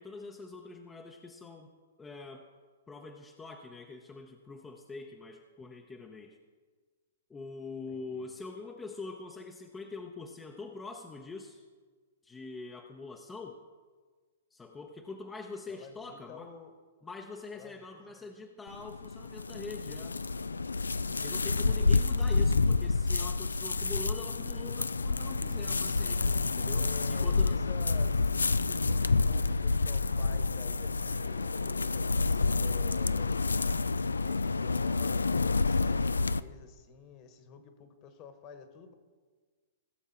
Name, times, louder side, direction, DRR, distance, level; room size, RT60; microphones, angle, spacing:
voice 1, 0.0-1.7 2.0-2.5 2.9-6.4 7.3-11.6 12.2-13.6 14.5-16.5 17.0-20.2 21.2-27.6, left 3 dB, 15° left, 2 dB, 0.8 m, -44 dB
voice 2, 7.9-8.3 15.7-16.7 17.5-18.4 26.8-33.4 34.2-38.9, left 6 dB, 35° left, 8 dB, 1.5 m, -51 dB
sound 1, 18.7-36.4, left 3 dB, 90° left, 0.3 m, -29 dB
17.0 x 7.2 x 4.4 m, 1.5 s
hypercardioid pair, 115°, 0 cm